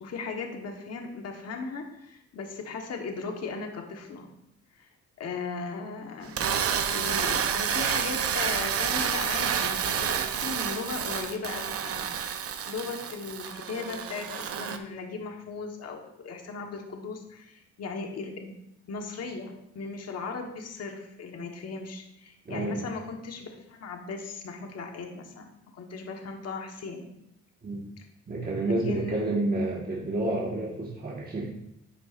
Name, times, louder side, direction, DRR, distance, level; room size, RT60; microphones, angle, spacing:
voice 1, 0.0-4.3 4.7-4.9 5.2-6.5 6.9-18.5 18.9-27.1 28.0-28.1 28.9-29.2, left 4 dB, 55° left, 3 dB, 1.3 m, -37 dB
sound 1, 6.2-14.8, right 8 dB, 50° right, 0.7 m, -29 dB
voice 2, 22.4-22.9 27.6-27.9 28.3-31.5, right 2 dB, 30° right, -4 dB, 1.6 m, -29 dB
11.0 x 7.0 x 2.5 m, 0.82 s
cardioid pair, 90°, 30 cm